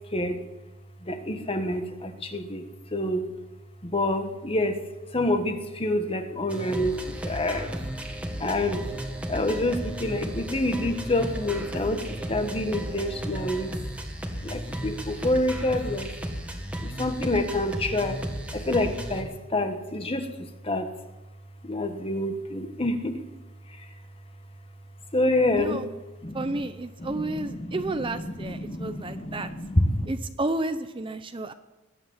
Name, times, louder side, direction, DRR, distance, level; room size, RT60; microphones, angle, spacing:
voice 1, 1.0-3.2 3.9-4.8 5.1-6.9 7.2-7.7 8.4-8.8 9.3-13.7 14.4-16.1 16.8-18.2 18.5-20.3 20.6-20.9 21.6-23.2 25.1-25.8 26.2-26.6 27.0-30.1, left 1 dB, 25° left, 7 dB, 1.4 m, -27 dB
sound 1, 6.5-19.2, equal, 5° right, 1.8 m, -34 dB
voice 2, 26.3-29.5 30.1-31.5, right 2 dB, 25° right, 9 dB, 0.6 m, -31 dB
21.0 x 9.1 x 7.3 m, 1.1 s
head